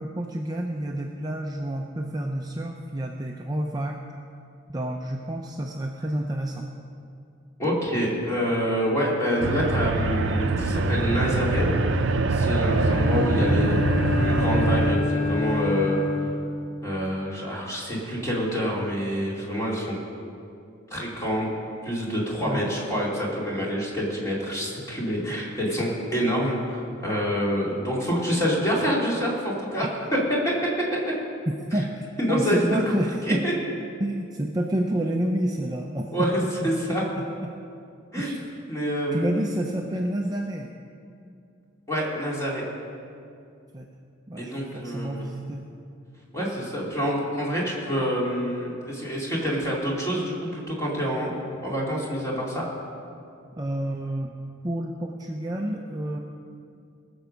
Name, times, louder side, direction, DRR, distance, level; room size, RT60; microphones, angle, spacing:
voice 1, 0.0-4.0 4.7-6.7 22.4-22.7 31.7-33.4 34.0-36.1 36.6-36.7 38.2-38.4 39.1-40.7 43.7-43.9 44.3-45.7 53.6-54.3 54.6-56.2, right 1 dB, 20° right, 1 dB, 0.5 m, -29 dB
voice 2, 7.6-12.0 12.3-13.8 14.1-16.0 16.8-20.0 20.9-21.5 21.8-29.9 30.3-30.5 31.7-31.8 32.2-32.8 33.2-33.5 36.1-36.3 36.6-37.0 38.1-38.4 38.7-39.4 41.9-42.6 44.4-45.4 46.3-52.6, equal, 15° left, -5 dB, 2.7 m, -27 dB
sound 1, 9.4-14.9, right 3 dB, 60° right, 0.6 m, -23 dB
Bowed string instrument, 12.6-17.2, left 3 dB, 50° left, 3.0 m, -28 dB
19.5 x 7.0 x 5.2 m, 2.5 s
head